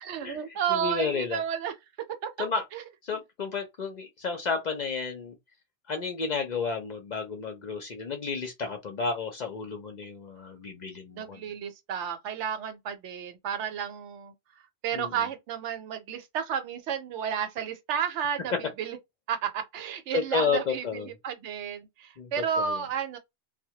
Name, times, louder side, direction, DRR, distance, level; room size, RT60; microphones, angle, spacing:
voice 1, 0.0-1.7 2.2-2.3 2.7-2.8 11.1-14.3 14.8-19.0 19.3-23.2, right 8 dB, 80° right, 0.9 m, -32 dB
voice 2, 0.7-1.4 2.4-2.6 3.1-5.3 5.9-11.4 14.9-15.2 20.1-21.1 22.2-22.3 22.6-22.8, left 5 dB, 55° left, 0.5 m, -32 dB
2.1 x 2.0 x 2.7 m
omnidirectional pair, 1.2 m